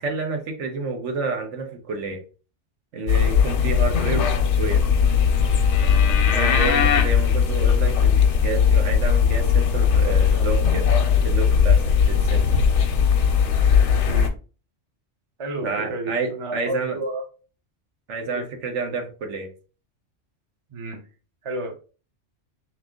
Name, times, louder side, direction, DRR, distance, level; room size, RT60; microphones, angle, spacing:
voice 1, 0.0-2.2 2.9-4.3 4.6-4.8 6.3-10.9 11.2-12.4 15.6-17.0 18.1-19.5, right 4 dB, 80° right, 4 dB, 1.2 m, -29 dB
sound 1, 3.1-14.3, left 7 dB, 80° left, 0.9 m, -18 dB
voice 2, 14.0-14.3 15.4-17.3 18.2-18.4 20.7-21.0 21.4-21.7, right 2 dB, 35° right, 5 dB, 0.6 m, -31 dB
3.4 x 2.9 x 3.6 m, 0.36 s
omnidirectional pair, 1.2 m